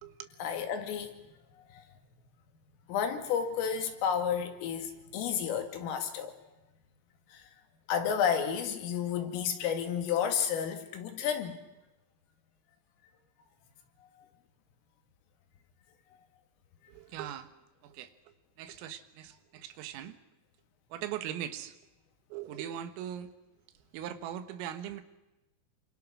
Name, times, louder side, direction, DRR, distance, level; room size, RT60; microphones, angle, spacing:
voice 1, 0.4-1.1 1.7-1.8 2.9-6.3 7.3-7.4 7.9-11.6, left 8 dB, 80° left, 6 dB, 4.8 m, -31 dB
voice 2, 16.9-17.5 17.8-20.2 20.9-21.8 22.3-23.3 23.9-25.0, right 10 dB, 80° right, 11 dB, 4.0 m, -40 dB
27.5 x 25.5 x 6.3 m, 1.0 s
omnidirectional pair, 5.9 m